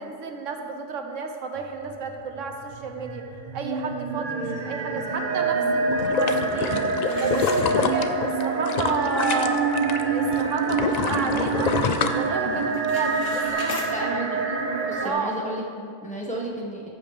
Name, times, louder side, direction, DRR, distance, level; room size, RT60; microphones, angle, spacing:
voice 1, 0.0-3.2 3.5-6.8 7.2-9.6 10.1-11.8 12.1-14.1 15.0-15.3, right 5 dB, 80° right, 4 dB, 1.2 m, -32 dB
sound 1, 2.5-15.1, right 3 dB, 45° right, 0.9 m, -26 dB
sound 2, 5.9-10.0 10.3-12.8 13.3-13.4, left 5 dB, 65° left, 0.4 m, -27 dB
sound 3, 7.0-8.3 8.8-8.9 9.4-9.5 9.9-10.2 10.6-11.8 12.0-12.4 12.6-13.9, left 3 dB, 85° left, 1.5 m, -39 dB
voice 2, 13.9-14.6 14.9-16.9, right 1 dB, 5° left, -5 dB, 1.5 m, -33 dB
14.0 x 8.0 x 3.4 m, 2.4 s
omnidirectional pair, 1.3 m